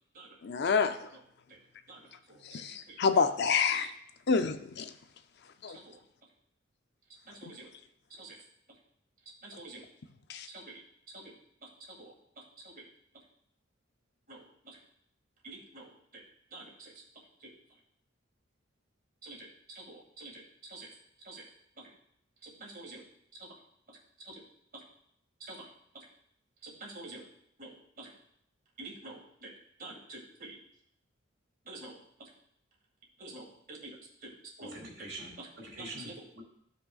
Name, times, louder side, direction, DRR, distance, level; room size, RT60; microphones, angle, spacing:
voice 1, 0.4-1.1 2.4-3.9 4.3-4.9 5.6-5.8 7.4-7.5 10.3-10.5, left 5 dB, 60° left, 9 dB, 0.5 m, -28 dB
voice 2, 2.3-3.0 5.7-6.0 7.3-7.7 8.2-8.4 9.4-9.8 10.5-10.8 11.1-11.2 12.0-12.1 12.6-12.8 14.3-14.8 15.4-16.2 16.5-16.9 17.4-17.5 19.2-20.4 20.7-20.9 21.3-21.4 22.4-23.0 23.4-23.5 24.3-24.4 25.4-25.7 26.6-27.2 27.6-28.1 28.8-29.5 29.8-30.6 31.7-32.0 33.2-34.0 34.2-34.7 36.0-36.1, right 2 dB, 50° right, -2 dB, 2.0 m, -47 dB
voice 3, 34.6-36.4, right 1 dB, 75° right, -3 dB, 2.9 m, -45 dB
14.5 x 5.3 x 2.4 m, 0.72 s
head